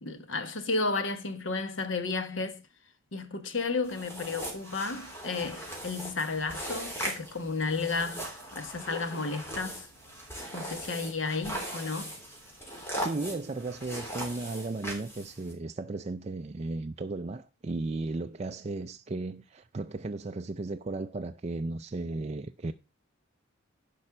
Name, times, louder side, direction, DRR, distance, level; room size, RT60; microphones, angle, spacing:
voice 1, 0.0-2.6 3.1-9.9 10.5-12.2, left 3 dB, 70° left, 1.3 m, -33 dB
sound 1, 3.8-15.5, equal, 10° left, 3.4 m, -39 dB
voice 2, 13.0-22.7, right 2 dB, 30° right, 0.4 m, -35 dB
11.0 x 5.5 x 5.9 m
head